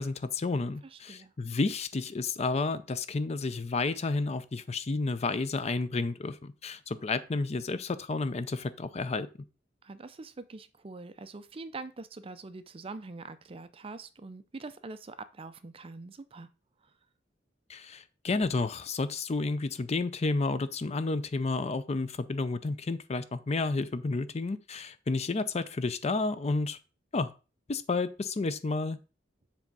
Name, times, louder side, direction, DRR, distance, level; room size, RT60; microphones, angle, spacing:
voice 1, 0.0-9.3 17.7-26.8 27.1-27.3 27.7-29.0, left 3 dB, 35° left, 0.5 m, -31 dB
voice 2, 0.8-1.3 9.8-16.5 16.8-16.9, right 3 dB, 30° right, 0.5 m, -44 dB
7.4 x 3.5 x 5.3 m
head